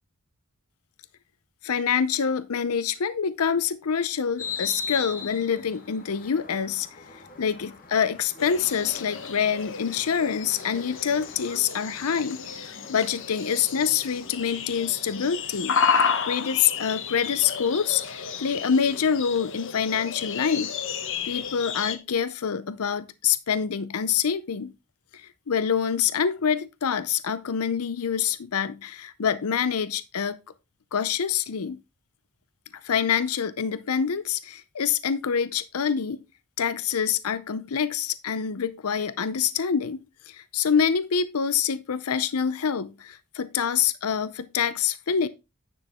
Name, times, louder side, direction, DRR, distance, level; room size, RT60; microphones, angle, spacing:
voice 1, 1.6-6.9 7.4-15.8 16.3-20.7 21.3-24.7 25.1-30.4 30.9-31.8 32.8-36.2 36.6-45.3, left 7 dB, 80° left, 0.6 m, -26 dB
sound 1, 4.4-11.6, left 5 dB, 40° left, 1.7 m, -39 dB
sound 2, 8.4-22.0, left 6 dB, 60° left, 1.1 m, -31 dB
9.9 x 6.3 x 3.6 m
head